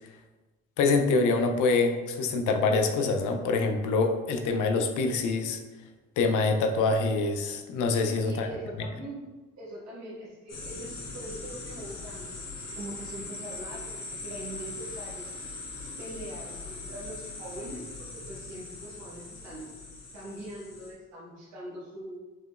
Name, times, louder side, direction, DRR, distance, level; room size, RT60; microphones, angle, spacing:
voice 1, 0.8-5.6 6.2-8.5, left 3 dB, 85° left, 5 dB, 0.6 m, -25 dB
voice 2, 8.2-9.2 9.6-15.3 16.0-19.7 20.1-22.2, right 1 dB, 60° right, -8 dB, 1.4 m, -42 dB
sound 1, 10.5-20.9, left 3 dB, 60° left, 1.1 m, -41 dB
4.9 x 3.0 x 2.4 m, 1.2 s
cardioid pair, 90°, 30 cm